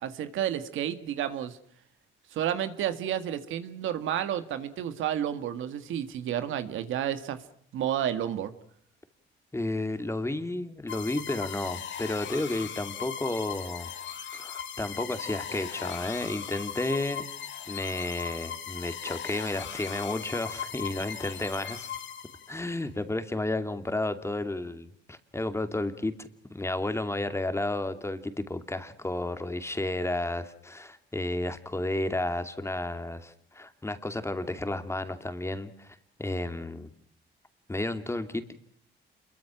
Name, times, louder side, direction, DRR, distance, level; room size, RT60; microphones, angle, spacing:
voice 1, 0.0-1.6 2.3-7.4 7.7-8.5, right 10 dB, 85° right, 10 dB, 1.9 m, -31 dB
voice 2, 9.5-13.9 14.3-17.2 17.7-21.9 22.5-36.9 37.7-38.6, left 2 dB, 15° left, 9 dB, 2.5 m, -32 dB
sound 1, 10.9-22.7, left 8 dB, 70° left, 2.7 m, -38 dB
28.0 x 22.5 x 6.2 m, 0.62 s
cardioid pair, 90°, 20 cm